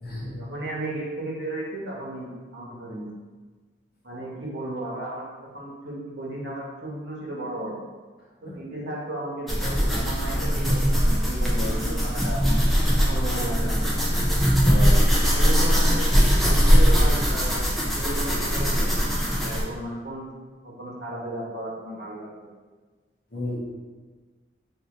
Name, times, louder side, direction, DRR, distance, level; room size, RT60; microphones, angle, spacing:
voice 1, 0.2-3.1 4.0-5.2 5.5-7.7 8.4-12.4 13.0-13.9 15.3-16.1 16.4-17.7 18.0-18.9 19.4-20.2 20.6-22.3, right 1 dB, 75° right, -5 dB, 1.0 m, -34 dB
sound 1, 9.5-19.6, equal, ahead, 0.4 m, -21 dB
voice 2, 14.6-15.1 23.3-23.6, left 1 dB, 50° left, -6 dB, 0.8 m, -31 dB
3.0 x 2.7 x 3.7 m, 1.4 s
head